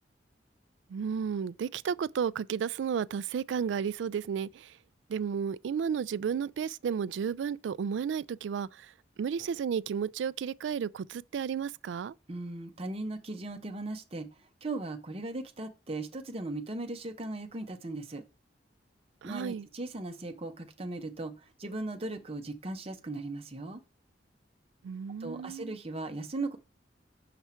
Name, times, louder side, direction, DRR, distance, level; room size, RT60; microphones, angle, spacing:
voice 1, 0.9-4.8 5.1-8.9 9.2-12.1 19.2-19.7 24.8-25.8, right 7 dB, 80° right, 0.3 m, -33 dB
voice 2, 12.3-14.3 14.6-18.2 19.2-23.8 25.2-26.6, right 2 dB, 35° right, 0.8 m, -38 dB
5.9 x 5.5 x 4.4 m
head